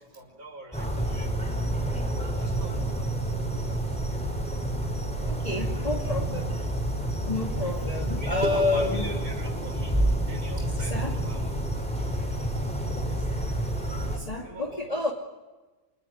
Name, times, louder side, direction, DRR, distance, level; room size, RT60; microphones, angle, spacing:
voice 1, 0.0-2.0 2.4-4.3 5.2-6.0 7.2-7.5 8.0-10.0 10.3-12.3 12.6-13.3 14.3-15.1, right 1 dB, 60° right, 4 dB, 6.7 m, -45 dB
sound 1, 0.7-14.2, right 1 dB, 5° left, 5.2 m, -29 dB
voice 2, 5.2-6.5 7.2-9.0 10.8-11.1 14.1-15.1, left 3 dB, 20° left, -1 dB, 2.6 m, -29 dB
sound 2, 8.4-13.2, right 2 dB, 35° right, 1.2 m, -40 dB
29.0 x 20.5 x 9.5 m, 1.2 s
omnidirectional pair, 1.7 m